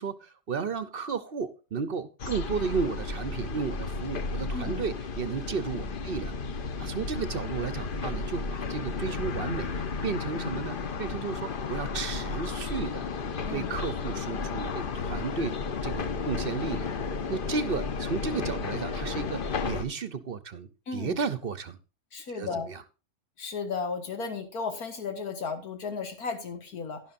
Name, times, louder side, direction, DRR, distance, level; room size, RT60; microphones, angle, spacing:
voice 1, 0.0-6.3 6.8-13.1 13.4-15.5 15.8-16.9 17.3-21.8 22.3-22.8, right 5 dB, 50° right, 14 dB, 0.8 m, -33 dB
sound 1, 2.2-19.8, left 4 dB, 45° left, 0.8 m, -33 dB
voice 2, 20.9-21.2 22.1-22.7 23.4-27.0, left 5 dB, 85° left, 5 dB, 2.1 m, -34 dB
11.0 x 11.0 x 2.5 m, 0.32 s
omnidirectional pair, 1.6 m